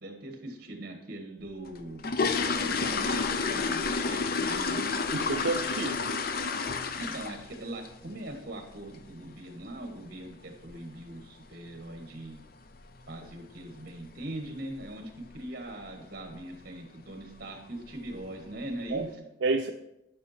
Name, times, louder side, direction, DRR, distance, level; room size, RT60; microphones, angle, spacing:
voice 1, 0.0-2.0 2.6-5.0 7.0-12.4 13.1-19.3, right 1 dB, 55° right, 4 dB, 1.8 m, -41 dB
sound 1, 1.7-7.6 7.8-8.1 8.5-8.6 8.9-9.1 9.5-9.7 9.9-10.0 10.6-10.7 11.0-11.1 11.7-12.0 12.2-12.3 12.7-13.0 13.3-13.4 13.8-13.9 14.5-14.8 15.2-15.5 15.8-15.9 16.4-16.5 17.2-17.4 17.8-18.3 18.7-18.8, left 4 dB, 55° left, 0.6 m, -30 dB
voice 2, 5.1-6.2 18.9-19.0 19.4-19.7, right 3 dB, 85° right, 4 dB, 0.5 m, -29 dB
11.0 x 5.9 x 4.4 m, 0.86 s
head